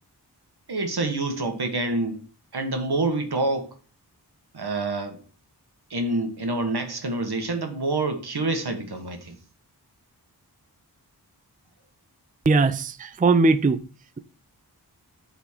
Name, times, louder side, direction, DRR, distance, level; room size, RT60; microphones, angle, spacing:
voice 1, 0.7-2.2 2.5-3.7 4.5-5.2 5.9-9.3, right 2 dB, 75° right, 1.5 m, -27 dB
voice 2, 12.5-13.8, right 3 dB, 20° right, 0.4 m, -19 dB
8.5 x 4.1 x 4.5 m
wide cardioid pair, 70°, 39 cm